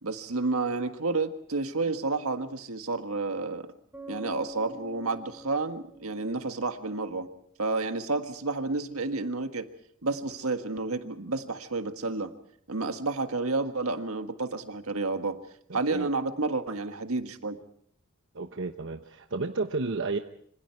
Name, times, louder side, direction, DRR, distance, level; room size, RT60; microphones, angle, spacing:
voice 1, 0.0-3.7 4.1-7.3 7.6-9.7 10.0-12.3 12.7-15.4 15.7-17.6, right 3 dB, 80° right, 7 dB, 1.6 m, -30 dB
Bass guitar, 3.9-7.6, right 1 dB, 10° right, 2.7 m, -46 dB
voice 2, 15.7-16.1 18.3-20.2, right 3 dB, 60° right, 6 dB, 1.0 m, -32 dB
26.5 x 25.0 x 4.6 m, 0.64 s
head